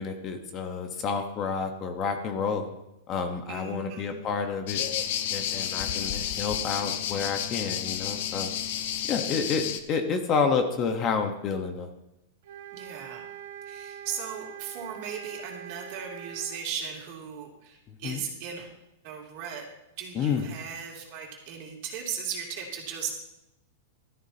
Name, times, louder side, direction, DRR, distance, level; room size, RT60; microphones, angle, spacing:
voice 1, 0.0-2.7 3.1-4.9 5.3-8.5 9.1-11.9 17.9-18.2 20.1-20.4, left 5 dB, 30° left, 5 dB, 1.2 m, -29 dB
voice 2, 3.5-4.2 12.7-13.3 13.7-18.7 19.0-19.7 20.0-23.1, right 7 dB, 45° right, 0 dB, 2.9 m, -37 dB
sound 1, 4.7-9.8, left 10 dB, 60° left, 1.0 m, -31 dB
sound 2, 12.4-16.6, right 10 dB, 70° right, 1.2 m, -43 dB
15.0 x 13.0 x 2.9 m, 0.90 s
supercardioid pair, 160°, 0 cm